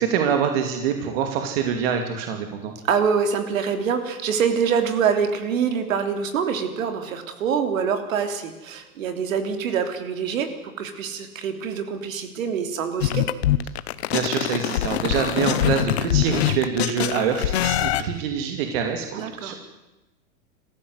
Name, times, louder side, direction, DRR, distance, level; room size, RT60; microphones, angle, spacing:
voice 1, 0.0-2.7 14.1-19.5, right 7 dB, 40° right, 5 dB, 2.6 m, -25 dB
voice 2, 2.8-10.5 10.8-13.2 19.1-19.5, right 6 dB, 65° right, 7 dB, 3.4 m, -25 dB
sound 1, 13.0-18.0, left 13 dB, 45° left, 1.0 m, -23 dB
28.0 x 15.0 x 8.0 m, 1.0 s
supercardioid pair, 165°, 43 cm